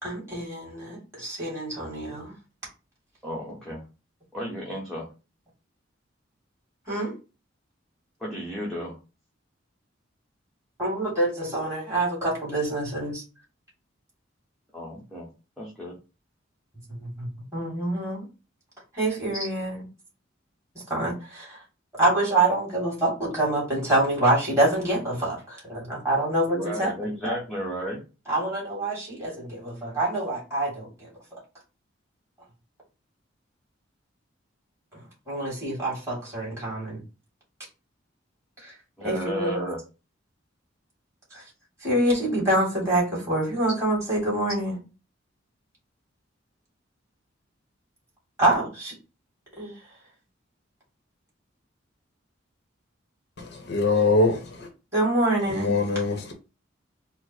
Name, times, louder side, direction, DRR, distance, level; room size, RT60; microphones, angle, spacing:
voice 1, 0.0-2.3 6.9-7.2 10.8-13.2 16.9-18.3 18.9-19.8 20.9-21.6 22.0-26.9 27.2-27.4 28.3-30.9 35.3-37.0 38.6-38.7 39.0-39.6 41.3-41.4 41.8-44.7 48.4-48.9 49.6-49.7 54.9-55.7, right 1 dB, 15° right, 2.4 m, -26 dB
voice 2, 3.2-3.8 4.3-5.1 8.2-9.0 14.7-15.3 15.6-16.0 19.4-19.5 26.5-28.0 39.0-39.8, equal, ahead, 1.0 m, -33 dB
voice 3, 53.4-54.7 55.5-56.3, left 3 dB, 60° left, 0.8 m, -23 dB
4.3 x 2.0 x 4.4 m
head